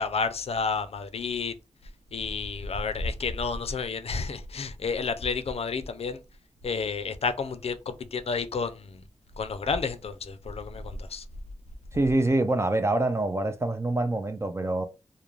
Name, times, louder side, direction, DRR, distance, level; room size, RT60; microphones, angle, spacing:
voice 1, 0.0-1.5 2.1-6.2 6.6-9.0 9.4-11.2, left 4 dB, 60° left, 0.4 m, -30 dB
voice 2, 11.9-14.9, right 2 dB, 25° right, 0.3 m, -25 dB
2.4 x 2.1 x 3.0 m
wide cardioid pair, 75°, 12 cm